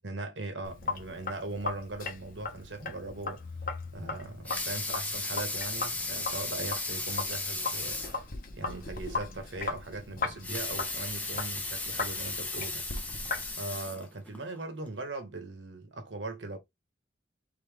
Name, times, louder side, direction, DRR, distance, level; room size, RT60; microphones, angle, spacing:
voice 1, 0.0-3.4 3.9-8.2 8.5-12.9 13.6-16.6, right 2 dB, 75° right, 1.3 m, -39 dB
Sink (filling or washing), 0.6-13.5, left 4 dB, 50° left, 1.0 m, -38 dB
Water tap faucet / Sink (filling or washing) / Liquid, 4.5-8.2 8.7-8.8 9.1-9.2 10.3-14.4 15.0-15.1, left 2 dB, 10° left, 0.8 m, -35 dB
4.0 x 3.9 x 3.4 m
head